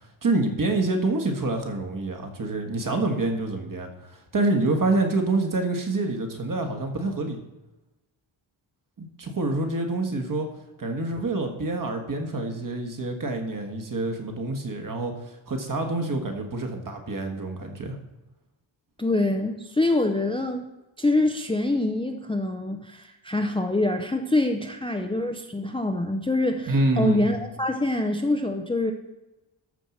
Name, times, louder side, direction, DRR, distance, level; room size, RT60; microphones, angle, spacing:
voice 1, 0.2-7.4 9.0-10.5 10.8-18.0 26.7-27.3, right 2 dB, 40° right, 4 dB, 1.6 m, -27 dB
voice 2, 19.0-20.6 21.0-28.9, left 2 dB, 10° left, 5 dB, 0.5 m, -25 dB
12.5 x 4.6 x 7.1 m, 1.0 s
wide cardioid pair, 175°, 47 cm